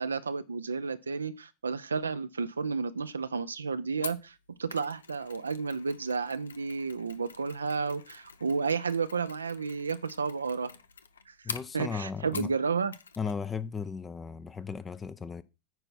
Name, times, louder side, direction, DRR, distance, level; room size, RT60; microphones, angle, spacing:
voice 1, 0.0-4.3 4.6-10.7 11.3-11.4 11.7-12.9, right 5 dB, 85° right, 0.6 m, -32 dB
Mechanisms, 4.0-12.6 12.9-13.4 13.6-13.8, left 5 dB, 85° left, 0.6 m, -46 dB
voice 2, 11.4-12.5 13.2-15.4, left 5 dB, 20° left, 0.7 m, -36 dB
9.2 x 4.5 x 5.8 m
hypercardioid pair, 90°, 0 cm